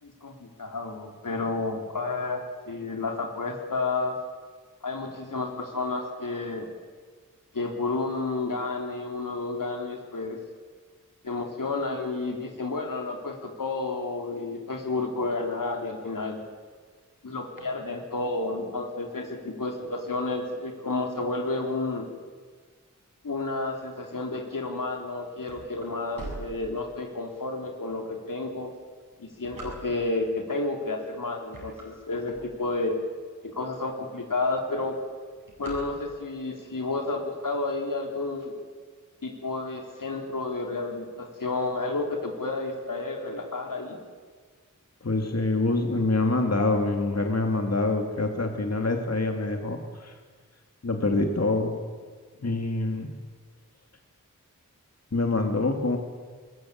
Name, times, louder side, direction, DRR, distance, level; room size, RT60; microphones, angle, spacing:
voice 1, 0.0-4.2 4.8-6.7 7.5-10.4 11.2-16.4 17.2-22.1 23.2-28.7 29.2-33.0 33.4-35.0 35.6-38.5 39.2-44.0, left 3 dB, 80° left, 2 dB, 3.7 m, -31 dB
sound 1, 25.4-27.2 27.8-27.9 28.6-30.3 30.9-31.1 31.4-33.0 33.5-33.6 33.8-33.9 34.2-34.5 34.8-36.4, right 2 dB, 90° right, 7.6 m, -42 dB
voice 2, 45.0-50.1 50.8-51.8 52.4-53.1 55.1-56.0, left 2 dB, 50° left, 4 dB, 2.6 m, -25 dB
21.5 x 20.5 x 8.8 m, 1.5 s
wide cardioid pair, 65°, 32 cm